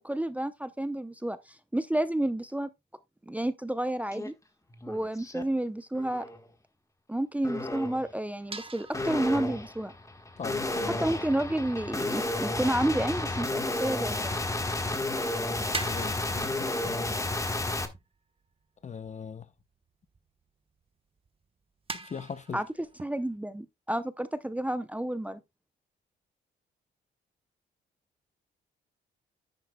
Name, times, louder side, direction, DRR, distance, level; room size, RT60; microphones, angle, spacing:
voice 1, 0.0-2.7 3.3-4.3 4.9-6.3 7.1-9.9 10.9-14.4 22.5-25.4, right 1 dB, 5° right, 0.6 m, -30 dB
sound 1, 4.1-4.3 4.7-5.4 5.9-6.4 7.4-8.1 8.9-17.9, left 2 dB, 15° left, 1.4 m, -32 dB
sound 2, 8.5-11.8 12.8-13.3 13.6-15.0 15.2-20.5 20.8-20.9 21.2-21.4 21.9-23.4, right 3 dB, 30° right, 1.1 m, -43 dB
voice 2, 10.4-11.0 15.8-17.0 18.8-19.5 22.0-22.6, left 6 dB, 35° left, 0.8 m, -40 dB
11.0 x 9.1 x 2.2 m
cardioid pair, 90°, 20 cm